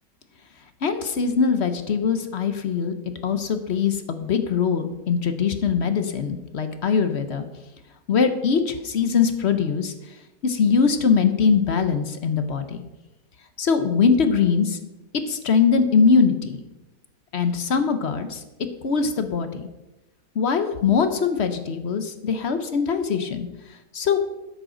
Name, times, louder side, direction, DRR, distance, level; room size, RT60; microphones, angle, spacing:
voice 1, 0.8-2.9 3.2-7.4 8.1-9.9 10.4-12.8 13.6-14.8 15.3-16.6 17.3-18.4 18.8-19.6 20.4-23.5 23.9-24.2, left 6 dB, 50° left, 9 dB, 0.8 m, -22 dB
12.5 x 10.0 x 3.8 m, 1.0 s
omnidirectional pair, 1.9 m